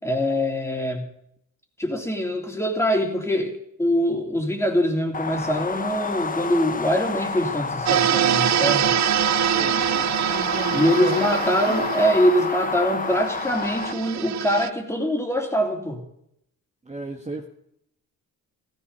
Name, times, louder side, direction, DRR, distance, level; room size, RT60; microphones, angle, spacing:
voice 1, 0.0-1.1 1.8-8.9 10.7-16.0, equal, 10° left, 1 dB, 3.2 m, -23 dB
sound 1, 5.1-13.9, left 4 dB, 25° left, 0.9 m, -29 dB
sound 2, 7.9-14.7, right 11 dB, 55° right, 0.5 m, -24 dB
voice 2, 9.5-11.7 16.8-17.5, right 3 dB, 20° right, 2 dB, 1.5 m, -35 dB
16.0 x 15.0 x 4.1 m, 0.75 s
cardioid pair, 90°, 33 cm